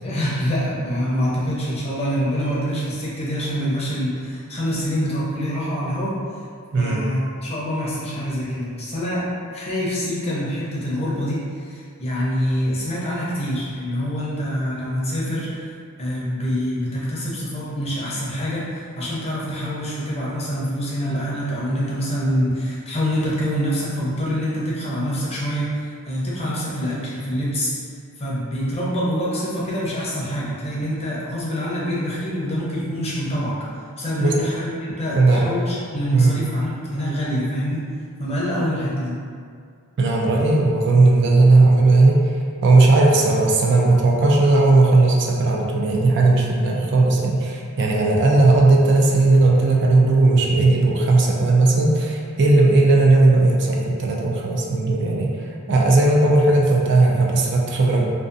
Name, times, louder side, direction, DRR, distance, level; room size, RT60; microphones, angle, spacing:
voice 1, 0.0-6.2 6.8-9.3 9.5-15.7 16.0-27.7 28.2-33.6 34.0-37.8 38.2-39.2, equal, 30° left, -7 dB, 0.6 m, -25 dB
voice 2, 35.1-35.4 36.1-36.4 40.0-42.2 42.6-55.3 55.7-58.1, right 2 dB, 55° right, -1 dB, 0.3 m, -16 dB
2.5 x 2.3 x 2.4 m, 2.2 s
head